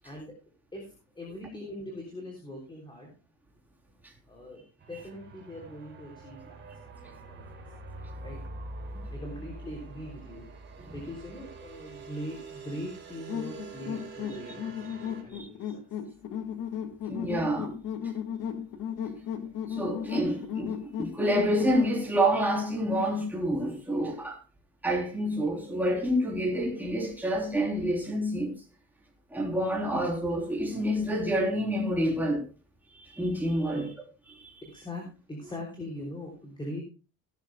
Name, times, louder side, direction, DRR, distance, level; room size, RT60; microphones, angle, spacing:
voice 1, 0.7-3.1 4.3-4.6 4.9-6.6 7.0-7.6 8.2-8.4 8.9-10.4 10.9-15.7 33.7-33.9 34.6-35.0 35.3-36.8, left 1 dB, 15° left, 3.3 m, -41 dB
sound 1, 4.8-15.2, right 3 dB, 35° right, 3.8 m, -45 dB
sound 2, 13.3-22.0, left 8 dB, 65° left, 2.0 m, -35 dB
voice 2, 17.1-17.8 19.7-24.4 24.8-28.6 29.3-32.5 33.0-33.9 34.4-34.5, equal, 5° right, 3.6 m, -28 dB
16.5 x 12.5 x 2.3 m
cardioid pair, 170°, 34 cm